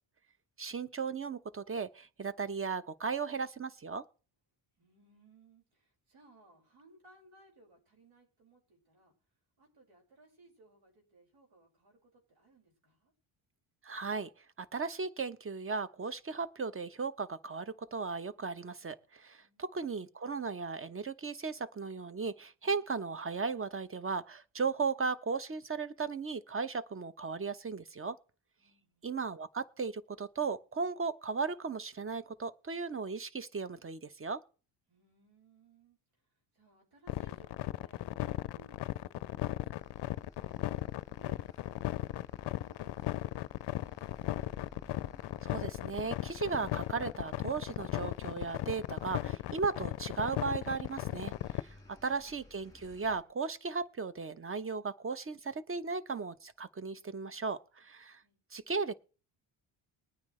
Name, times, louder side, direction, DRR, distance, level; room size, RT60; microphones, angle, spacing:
voice 1, 0.6-4.0 13.8-14.3 14.6-28.2 29.0-34.4 45.4-58.2 58.5-58.9, right 4 dB, 25° right, 0.9 m, -36 dB
voice 2, 4.8-9.1 9.6-13.1 19.3-19.8 28.6-29.2 34.9-36.0 36.5-38.1 38.3-40.6 41.1-43.5 43.8-44.8 58.2-58.4, right 1 dB, 80° right, 5.6 m, -64 dB
sound 1, 37.1-51.6, left 15 dB, 60° left, 0.5 m, -36 dB
sound 2, 39.7-53.2, left 2 dB, 10° left, 2.7 m, -58 dB
20.5 x 9.4 x 3.2 m
supercardioid pair, 65°, 49 cm